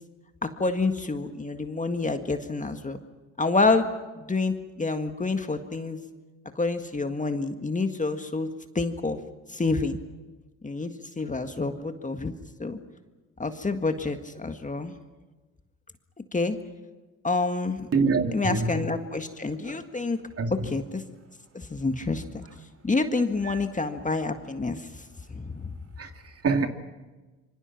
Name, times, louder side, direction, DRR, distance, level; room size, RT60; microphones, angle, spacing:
voice 1, 0.6-3.0 3.4-3.9 4.3-6.0 6.6-8.5 8.8-9.2 9.5-10.0 10.6-10.9 11.2-12.3 12.6-12.8 13.4-14.9 16.3-16.6 17.2-17.9 18.3-20.2 20.5-21.0 21.5-22.4 22.8-24.9 25.3-25.7, left 3 dB, 20° left, 1.8 m, -28 dB
voice 2, 17.9-18.7 20.4-20.5 23.5-23.6 26.0-26.1 26.4-26.7, right 4 dB, 35° right, 2.5 m, -24 dB
26.5 x 24.5 x 6.0 m
hypercardioid pair, 60°, 40 cm